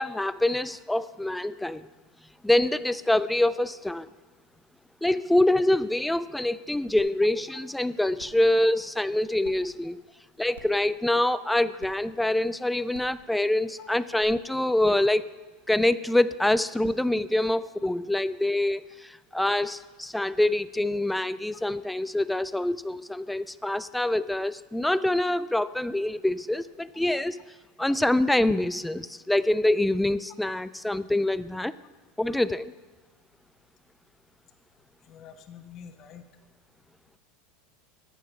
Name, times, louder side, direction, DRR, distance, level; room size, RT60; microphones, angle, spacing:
voice 1, 0.0-1.9 2.4-4.1 5.0-10.0 10.4-15.3 15.7-27.4 27.8-31.7 32.2-32.7, left 1 dB, 5° left, 16 dB, 0.4 m, -25 dB
sound 1, 7.0-7.1 7.5-7.6 8.2-8.4 9.4-9.5 10.5-10.8 11.8-11.9 12.9-13.2 14.2-14.3, right 7 dB, 80° right, 0.9 m, -47 dB
voice 2, 35.1-36.2, left 8 dB, 45° left, 9 dB, 0.8 m, -46 dB
8.8 x 7.0 x 7.1 m, 1.3 s
hypercardioid pair, 90°, 0 cm